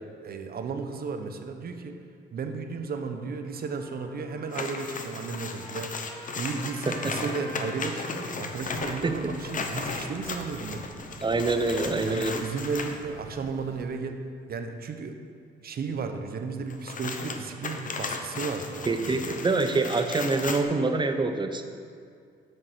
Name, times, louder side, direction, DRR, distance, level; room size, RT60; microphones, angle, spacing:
voice 1, 0.2-2.0 2.3-5.9 6.4-10.9 12.0-14.2 14.5-15.2 15.6-19.4, right 4 dB, 50° right, 6 dB, 0.9 m, -34 dB
Trumpet, 3.5-11.2, left 1 dB, 5° left, 1.7 m, -48 dB
sound 1, 4.5-13.0 16.7-20.6, left 4 dB, 40° left, 0.9 m, -36 dB
voice 2, 6.9-7.3 8.9-9.2 11.2-12.4 18.9-21.6, right 3 dB, 25° right, 7 dB, 0.7 m, -26 dB
sound 2, 8.5-13.8, right 3 dB, 85° right, 1.3 m, -48 dB
7.0 x 6.6 x 6.6 m, 2.2 s
cardioid pair, 90°, 20 cm